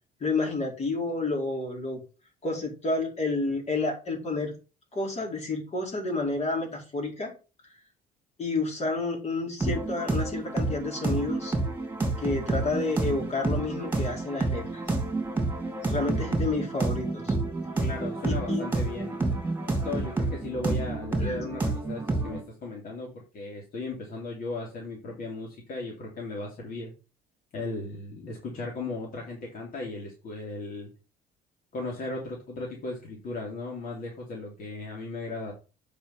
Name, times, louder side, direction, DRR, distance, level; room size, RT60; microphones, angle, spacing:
voice 1, 0.2-2.0 2.4-4.5 4.9-7.3 8.4-11.5 12.2-14.8 15.8-17.3 18.3-18.7 21.2-21.4, left 3 dB, 40° left, 0 dB, 4.7 m, -30 dB
sound 1, 9.6-22.4, right 2 dB, 10° right, 3.0 m, -29 dB
voice 2, 17.8-19.2 19.7-26.9 27.5-30.9 31.7-35.5, left 3 dB, 55° left, -2 dB, 3.1 m, -36 dB
8.0 x 5.6 x 5.6 m, 0.33 s
cardioid pair, 110°, 17 cm